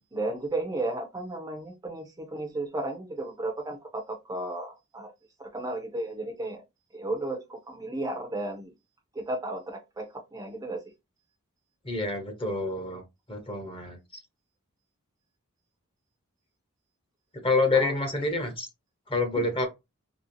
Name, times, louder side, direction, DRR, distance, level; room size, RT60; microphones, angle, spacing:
voice 1, 0.1-5.1 5.4-6.6 6.9-8.7 9.1-10.8 17.7-17.9 19.3-19.6, right 2 dB, 15° right, 0.5 m, -34 dB
voice 2, 11.8-13.0 13.3-14.0 17.4-18.7 19.1-19.7, left 3 dB, 25° left, 0.9 m, -27 dB
2.9 x 2.7 x 2.9 m
head